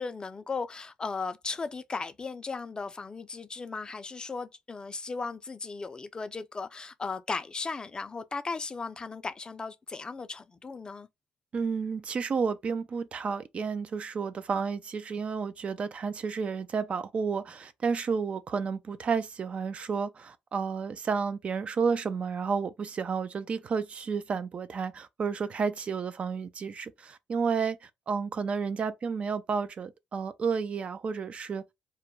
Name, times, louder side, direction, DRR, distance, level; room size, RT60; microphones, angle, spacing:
voice 1, 0.0-11.1, left 4 dB, 30° left, 0.4 m, -36 dB
voice 2, 11.5-31.6, right 5 dB, 45° right, 0.3 m, -31 dB
2.2 x 2.1 x 3.0 m
supercardioid pair, 75°, 3 cm